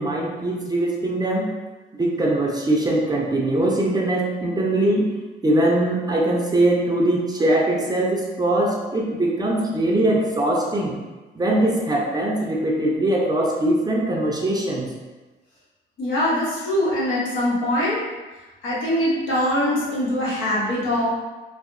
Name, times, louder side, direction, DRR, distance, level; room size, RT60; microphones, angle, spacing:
voice 1, 0.0-1.5 1.9-5.1 5.4-10.9 11.3-14.9, right 1 dB, 20° right, -2 dB, 0.4 m, -21 dB
voice 2, 16.0-18.0 18.6-21.1, left 1 dB, 80° left, -7 dB, 0.9 m, -22 dB
2.7 x 2.0 x 2.5 m, 1.2 s
cardioid pair, 90°, 20 cm